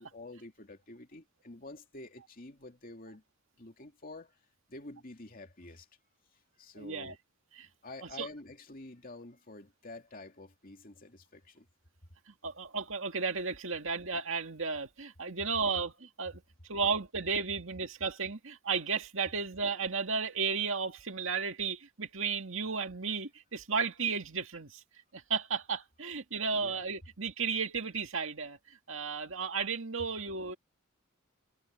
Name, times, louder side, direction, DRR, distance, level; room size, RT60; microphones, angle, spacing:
voice 1, 0.0-3.2 3.6-4.4 4.7-5.9 6.6-7.2 7.8-11.7 26.5-26.8, left 2 dB, 40° left, 2.6 m, -48 dB
voice 2, 6.8-7.1 7.6-7.7 8.2-8.3 12.3-16.4 16.7-24.8 25.1-30.6, right 5 dB, 65° right, 2.2 m, -34 dB
head